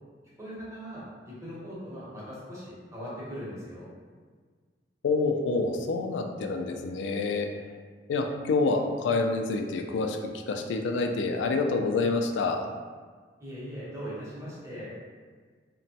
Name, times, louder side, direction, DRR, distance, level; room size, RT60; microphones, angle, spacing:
voice 1, 0.4-3.9 13.4-14.9, equal, 15° right, -9 dB, 0.8 m, -40 dB
voice 2, 5.0-7.5 8.1-12.7, left 3 dB, 90° left, 4 dB, 0.3 m, -27 dB
2.9 x 2.2 x 2.7 m, 1.5 s
head